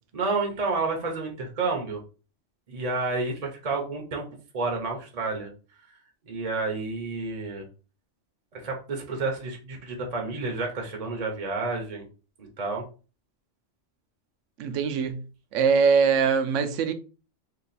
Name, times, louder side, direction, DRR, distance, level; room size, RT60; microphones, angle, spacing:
voice 1, 0.1-2.0 2.7-4.3 4.5-5.5 6.3-7.6 8.5-12.1 12.4-12.8, right 3 dB, 40° right, 0.7 m, -30 dB
voice 2, 14.6-16.9, right 5 dB, 80° right, 0.9 m, -23 dB
2.9 x 2.3 x 4.0 m
omnidirectional pair, 1.3 m